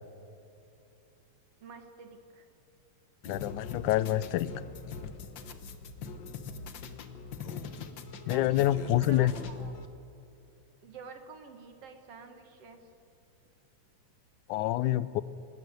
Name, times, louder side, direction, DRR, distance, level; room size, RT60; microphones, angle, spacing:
voice 1, 1.6-2.5 7.4-7.5 8.3-9.8 10.8-12.8, right 5 dB, 55° right, 6 dB, 2.3 m, -48 dB
sound 1, 3.2-9.9, left 5 dB, 65° left, 1.2 m, -41 dB
voice 2, 3.3-4.5 8.3-9.3 14.5-15.2, left 14 dB, 85° left, 17 dB, 2.1 m, -27 dB
24.5 x 13.5 x 9.5 m, 2.6 s
omnidirectional pair, 3.4 m